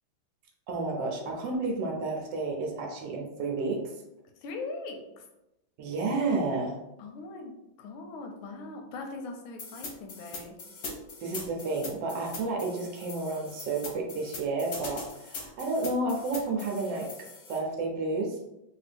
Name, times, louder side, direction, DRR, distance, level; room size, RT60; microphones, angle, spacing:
voice 1, 0.7-3.8 5.8-6.8 11.2-17.1 17.5-18.4, right 3 dB, 70° right, 1 dB, 1.2 m, -31 dB
voice 2, 4.4-5.2 7.0-10.6, left 3 dB, 85° left, 3 dB, 1.5 m, -40 dB
sound 1, 9.6-17.6, left 3 dB, 60° left, 1.1 m, -42 dB
3.3 x 2.7 x 3.3 m, 0.92 s
omnidirectional pair, 2.2 m